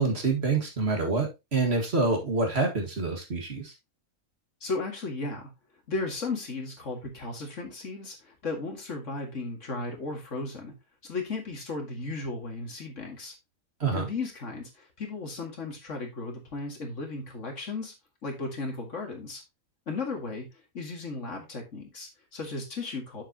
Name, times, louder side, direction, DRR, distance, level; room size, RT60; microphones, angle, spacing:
voice 1, 0.0-3.7 13.8-14.1, right 3 dB, 45° right, 2.1 m, -27 dB
voice 2, 4.6-5.5 5.9-10.7 11.0-13.3 13.9-17.9 18.2-19.4 19.9-23.2, left 3 dB, 60° left, 2.3 m, -35 dB
7.6 x 7.2 x 2.8 m
omnidirectional pair, 1.5 m